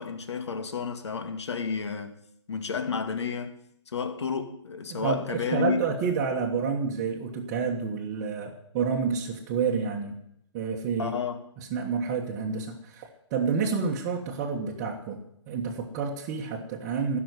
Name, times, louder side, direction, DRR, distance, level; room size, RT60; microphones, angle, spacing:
voice 1, 0.0-2.2 2.5-3.6 3.9-5.8 11.0-11.4, left 6 dB, 65° left, 2.1 m, -31 dB
voice 2, 4.9-10.1 10.5-11.1 11.6-15.2 15.5-17.2, right 5 dB, 20° right, 1.3 m, -29 dB
15.5 x 6.4 x 9.6 m
hypercardioid pair, 165°, 15 cm